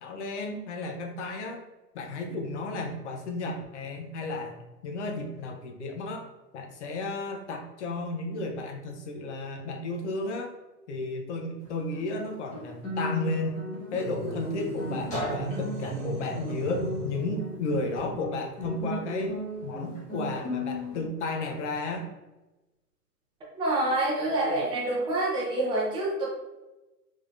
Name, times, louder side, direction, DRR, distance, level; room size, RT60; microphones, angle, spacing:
voice 1, 0.0-1.6 1.9-6.3 6.5-10.5 10.9-13.6 13.9-19.3 19.6-22.1, left 2 dB, 45° left, 3 dB, 0.8 m, -33 dB
Guitar, 11.6-21.1, left 1 dB, 15° left, 1.1 m, -36 dB
sound 1, 13.9-17.4, right 2 dB, 65° right, 1.1 m, -35 dB
voice 2, 23.6-26.3, right 2 dB, 10° right, -5 dB, 0.7 m, -27 dB
3.6 x 3.0 x 2.4 m, 1.0 s
hypercardioid pair, 135°, 49 cm